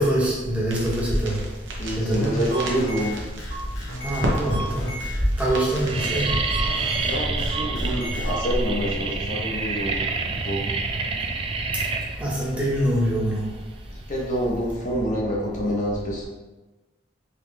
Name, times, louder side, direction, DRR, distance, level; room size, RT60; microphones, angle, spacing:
voice 1, 0.0-1.4 2.0-2.4 4.0-4.9 5.4-6.3 12.2-13.5, right 1 dB, 10° right, -7 dB, 1.1 m, -24 dB
sound 1, 0.7-7.2, equal, 85° right, 0.8 m, -33 dB
voice 2, 1.8-3.2 7.0-10.7 14.1-16.2, equal, 45° left, -3 dB, 0.9 m, -27 dB
sound 2, 2.5-8.4, right 1 dB, 80° left, 1.1 m, -34 dB
sound 3, 3.3-3.8 4.5-4.6 4.9-5.3 5.5-14.4, right 4 dB, 30° right, 0.3 m, -29 dB
3.9 x 3.1 x 3.3 m, 1.1 s
head